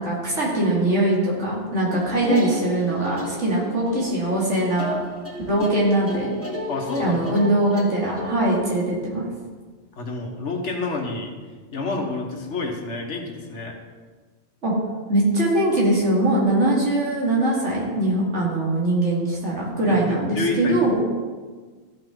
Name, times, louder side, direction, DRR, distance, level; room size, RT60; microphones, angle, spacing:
voice 1, 0.0-4.9 5.5-6.3 7.0-9.3 14.6-14.7 15.1-21.0, right 1 dB, 80° right, -4 dB, 2.7 m, -22 dB
sound 1, 1.9-8.3, equal, 10° left, 1.4 m, -32 dB
voice 2, 6.7-7.2 9.9-11.3 11.7-13.7 19.9-20.8, left 3 dB, 85° left, 2 dB, 1.6 m, -28 dB
14.5 x 5.8 x 3.8 m, 1.4 s
omnidirectional pair, 1.2 m